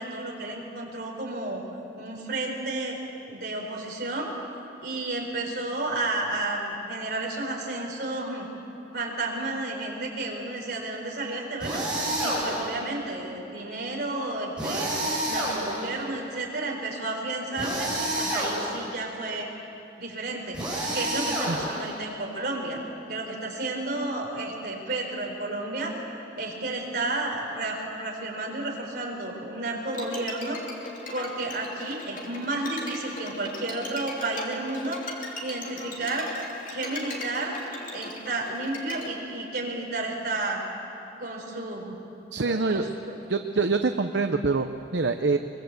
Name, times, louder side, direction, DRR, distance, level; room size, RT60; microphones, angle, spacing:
voice 1, 0.0-1.6 2.0-3.0 3.3-4.3 4.8-8.5 8.9-11.8 12.2-14.9 15.3-19.5 20.0-20.6 20.9-22.8 23.1-25.9 26.4-30.6 31.1-35.0 35.4-36.3 36.7-37.6 37.9-40.6 41.2-41.9 42.4-43.2, right 2 dB, 60° right, -1 dB, 4.7 m, -32 dB
sound 1, 11.6-12.7 14.6-16.0 17.6-18.9 20.5-22.0, right 1 dB, 5° right, 7.8 m, -29 dB
Bowed string instrument, 29.9-39.1, left 2 dB, 45° left, 3.0 m, -39 dB
voice 2, 42.3-42.9 43.3-45.4, right 4 dB, 75° right, 7 dB, 0.7 m, -25 dB
23.0 x 23.0 x 8.0 m, 2.9 s
head